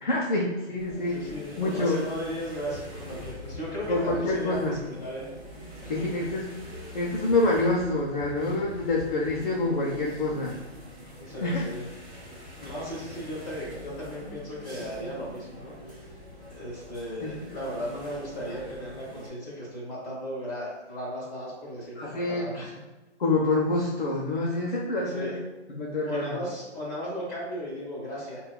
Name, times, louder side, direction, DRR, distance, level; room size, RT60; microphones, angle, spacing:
voice 1, 0.0-1.2 1.6-2.0 3.9-4.8 5.9-6.5 6.9-10.5 11.4-11.6 17.2-17.3 22.0-22.5 23.2-25.4 25.7-26.4, left 2 dB, 45° left, -4 dB, 0.5 m, -26 dB
sound 1, 0.8-19.3, left 1 dB, 15° right, 1.3 m, -44 dB
voice 2, 1.0-5.3 5.8-5.9 11.2-11.8 12.6-16.0 16.6-22.8 25.0-25.3 26.0-28.4, equal, 20° left, -7 dB, 1.4 m, -36 dB
5.0 x 2.3 x 2.2 m, 1.1 s
hypercardioid pair, 175°, 35 cm